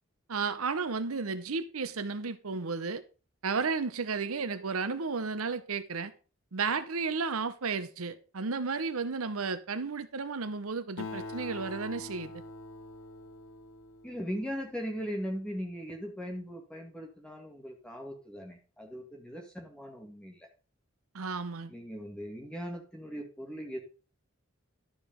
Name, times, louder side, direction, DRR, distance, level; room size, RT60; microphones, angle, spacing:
voice 1, 0.3-3.0 3.4-6.1 6.5-12.4 21.1-21.7, right 4 dB, 90° right, 0.9 m, -33 dB
Acoustic guitar, 11.0-14.8, left 2 dB, 75° left, 0.8 m, -44 dB
voice 2, 14.0-20.5 21.7-23.8, equal, 5° left, 1.9 m, -39 dB
12.0 x 5.0 x 5.2 m
head